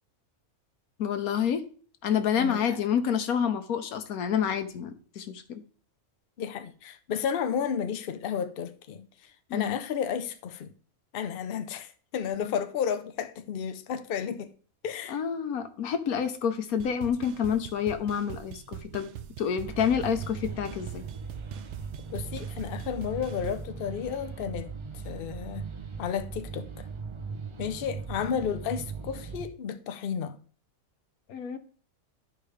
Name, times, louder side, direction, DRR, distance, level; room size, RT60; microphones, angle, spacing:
voice 1, 1.0-1.7 2.0-5.6 9.5-9.8 15.1-19.1 19.4-21.0 31.3-31.6, left 8 dB, 90° left, 1.3 m, -28 dB
voice 2, 6.4-9.1 9.5-10.7 11.1-14.5 14.8-15.2 22.1-24.7 25.0-25.6 26.0-26.9 27.6-30.4, left 8 dB, 50° left, 0.7 m, -32 dB
sound 1, 16.8-23.6, right 10 dB, 65° right, 0.8 m, -43 dB
sound 2, 19.6-29.5, right 5 dB, 45° right, 0.4 m, -39 dB
12.5 x 5.0 x 3.2 m
omnidirectional pair, 1.5 m